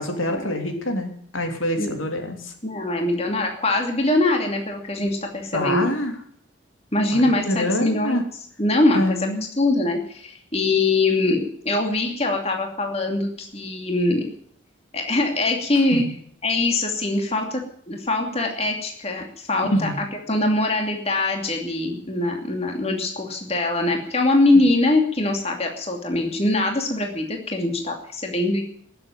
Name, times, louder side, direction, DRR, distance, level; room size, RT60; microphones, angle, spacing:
voice 1, 0.0-2.5 5.5-6.1 7.1-8.2 8.9-9.5 15.7-16.0 19.6-20.0 24.5-24.7, left 1 dB, 85° left, 4 dB, 3.1 m, -26 dB
voice 2, 2.6-5.9 6.9-8.2 8.6-9.3 9.6-14.2 14.9-16.0 16.4-28.6, left 2 dB, 30° left, 2 dB, 2.7 m, -23 dB
19.0 x 7.9 x 9.2 m, 0.62 s
head